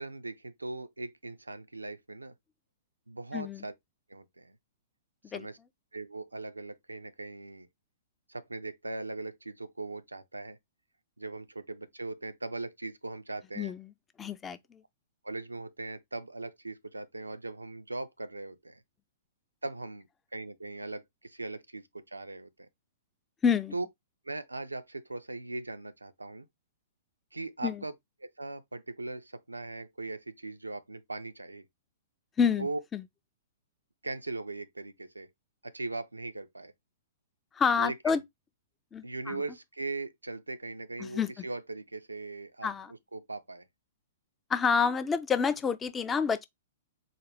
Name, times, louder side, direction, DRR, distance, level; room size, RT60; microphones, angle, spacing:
voice 1, 0.0-2.3 3.1-3.7 4.1-4.6 5.3-5.6 5.9-7.7 8.3-10.6 11.2-13.7 15.2-18.8 19.6-20.1 20.3-22.7 23.7-23.9 24.3-26.5 27.3-27.9 28.2-31.7 32.6-32.8 34.0-35.3 35.6-36.7 37.8-38.2 39.0-43.6, right 2 dB, 80° right, 0.4 m, -39 dB
voice 2, 3.3-3.6 5.3-5.5 13.6-13.9 14.2-14.8 23.4-23.7 27.6-27.8 32.4-32.7 32.9-33.0 37.5-38.2 38.9-39.4 41.0-41.3 42.6-42.9 44.5-46.5, left 6 dB, 15° left, 0.4 m, -28 dB
3.9 x 2.1 x 3.2 m
figure-of-eight pair, 110°, 0 cm